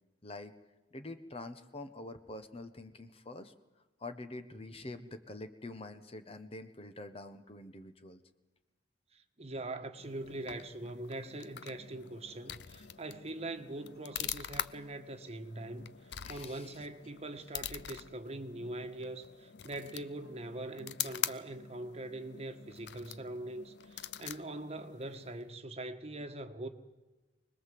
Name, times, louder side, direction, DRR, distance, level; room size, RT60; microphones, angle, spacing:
voice 1, 0.2-0.5 0.9-3.5 4.0-8.2 12.7-12.8 16.2-16.8, left 2 dB, 35° left, 1.2 m, -46 dB
voice 2, 9.1-16.0 16.3-26.7, right 2 dB, 35° right, 1.4 m, -42 dB
sound 1, 10.0-25.5, left 11 dB, 65° left, 0.7 m, -44 dB
24.5 x 20.0 x 7.8 m
head